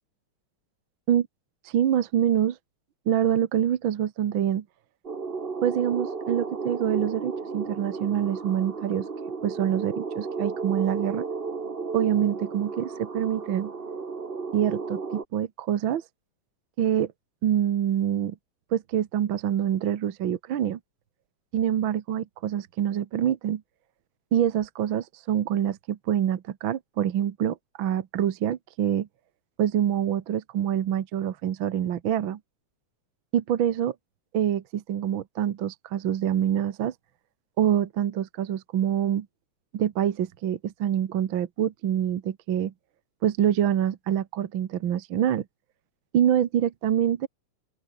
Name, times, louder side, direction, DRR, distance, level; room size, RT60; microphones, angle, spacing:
voice 1, 1.6-2.6 3.1-4.6 5.6-9.1 9.4-11.2 11.9-13.7 14.5-16.0 16.8-17.1 17.4-18.3 18.7-20.8 21.5-23.6 24.3-29.1 29.6-32.4 33.3-33.9 34.3-36.9 37.6-39.3 39.7-42.7 43.2-45.4 46.1-47.3, right 10 dB, 60° right, 1.4 m, -25 dB
sound 1, 5.0-15.2, right 4 dB, 40° right, 0.8 m, -33 dB
open air
omnidirectional pair, 3.6 m